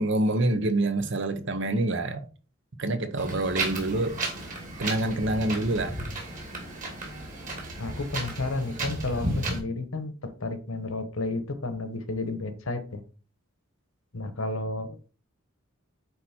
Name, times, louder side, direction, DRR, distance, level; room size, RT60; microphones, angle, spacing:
voice 1, 0.0-2.3 2.8-4.2 4.8-6.0, right 2 dB, 60° right, 1.0 m, -26 dB
Wind, 3.2-9.6, right 2 dB, 40° right, 2.6 m, -34 dB
voice 2, 7.8-13.0 14.1-15.1, left 2 dB, 80° left, 1.2 m, -32 dB
9.2 x 4.3 x 4.4 m
head